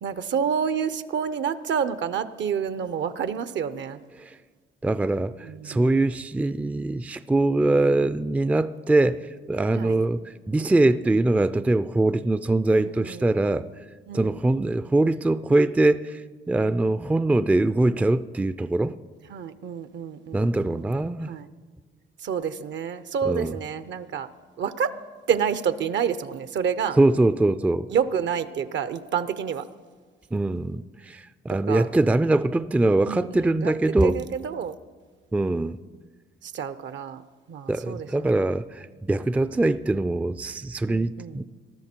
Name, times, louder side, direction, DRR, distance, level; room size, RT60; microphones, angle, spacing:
voice 1, 0.0-4.0 5.4-6.0 9.8-10.0 12.8-13.3 14.1-14.4 19.3-20.8 21.3-21.5 22.2-24.3 24.6-25.0 25.3-27.0 27.9-29.6 31.7-31.9 33.1-33.7 34.0-34.7 36.4-37.2 37.5-38.1 40.9-41.4, right 7 dB, 65° right, 0.8 m, -28 dB
voice 2, 4.8-10.2 10.5-13.7 14.1-19.0 20.3-21.3 23.2-23.6 27.0-27.9 30.3-34.2 35.3-35.8 37.7-41.4, right 2 dB, 5° right, 0.3 m, -23 dB
20.0 x 12.5 x 4.4 m
cardioid pair, 90°, 20 cm